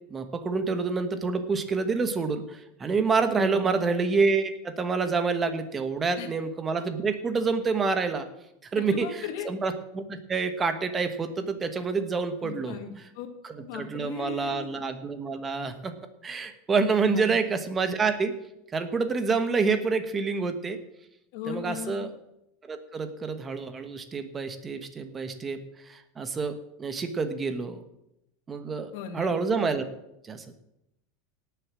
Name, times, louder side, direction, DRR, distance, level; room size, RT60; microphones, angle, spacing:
voice 1, 0.1-8.3 8.7-12.8 13.4-15.9 16.2-18.3 18.7-20.8 21.5-22.1 22.6-27.8 28.5-29.9 30.2-30.5, right 4 dB, 20° right, 8 dB, 1.3 m, -28 dB
voice 2, 3.4-3.8 6.2-6.3 8.7-9.5 12.4-13.3 13.6-14.7 17.1-17.4 21.3-22.0 28.9-29.3, left 8 dB, 65° left, 6 dB, 2.1 m, -38 dB
18.0 x 6.9 x 6.3 m, 0.85 s
supercardioid pair, 145°, 0 cm